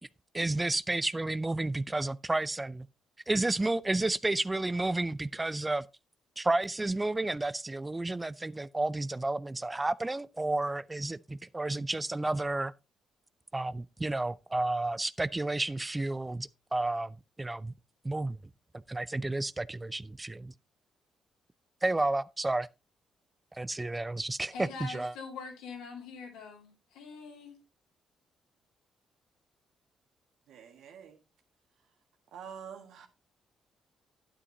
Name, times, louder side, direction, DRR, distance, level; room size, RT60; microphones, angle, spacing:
voice 1, 0.3-2.9 3.3-5.9 6.4-12.7 13.5-17.7 18.0-18.4 18.9-20.5 21.8-22.7 23.5-25.1, right 2 dB, 20° right, 0.4 m, -31 dB
voice 2, 24.5-27.6, left 5 dB, 75° left, 3.2 m, -44 dB
voice 3, 30.5-31.2 32.3-33.1, right 7 dB, 70° right, 1.8 m, -46 dB
11.0 x 9.6 x 2.8 m
hypercardioid pair, 45°, 0 cm